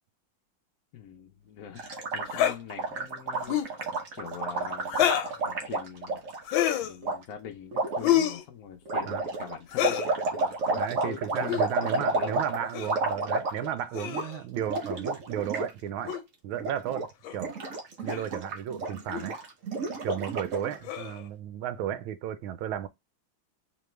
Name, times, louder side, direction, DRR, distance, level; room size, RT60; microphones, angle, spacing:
voice 1, 0.9-3.8 4.2-5.1 5.4-6.2 6.8-12.4, left 7 dB, 65° left, 0.9 m, -43 dB
Gurgling, 1.8-6.4 7.0-7.2 7.7-8.1 8.9-13.8 14.1-14.3 14.5-15.7 16.0-16.2 16.5-17.1 17.3-20.8, right 3 dB, 50° right, 1.1 m, -31 dB
sound 1, 2.3-2.6 3.4-3.8 4.9-5.4 6.4-6.9 8.0-8.4 9.7-10.1 11.4-11.7 12.7-13.0 13.9-14.4 16.1-16.2 17.2-17.4 18.1-18.3 19.1-19.3 20.8-21.2, left 11 dB, 80° left, 1.4 m, -27 dB
voice 2, 10.7-16.1 16.4-17.5 18.0-19.4 20.0-22.9, right 10 dB, 85° right, 1.4 m, -34 dB
4.1 x 3.0 x 3.2 m
omnidirectional pair, 2.2 m